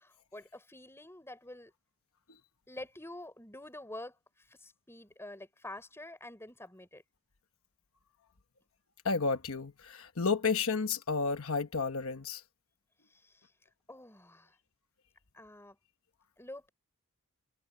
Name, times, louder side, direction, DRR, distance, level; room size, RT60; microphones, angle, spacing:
voice 1, 0.0-1.7 2.7-4.2 4.5-7.0 13.1-13.3 13.9-14.5 15.3-15.8 16.4-16.7, left 1 dB, 10° left, 5.6 m, -47 dB
voice 2, 9.0-12.4, left 4 dB, 70° left, 1.1 m, -31 dB
head